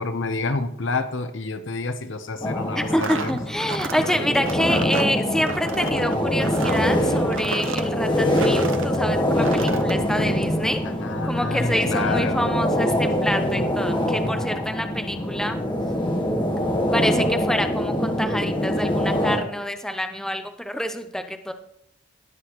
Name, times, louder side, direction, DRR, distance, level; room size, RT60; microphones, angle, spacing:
voice 1, 0.0-3.3 11.0-12.6, left 3 dB, 60° left, 10 dB, 0.8 m, -28 dB
sound 1, 2.4-19.4, equal, 25° left, 1.4 m, -24 dB
voice 2, 2.8-10.8 11.2-15.6 16.9-21.5, equal, 5° left, 7 dB, 0.5 m, -27 dB
sound 2, 2.8-9.0 9.3-9.9, right 4 dB, 70° right, 0.8 m, -33 dB
18.0 x 6.1 x 3.0 m, 0.80 s
head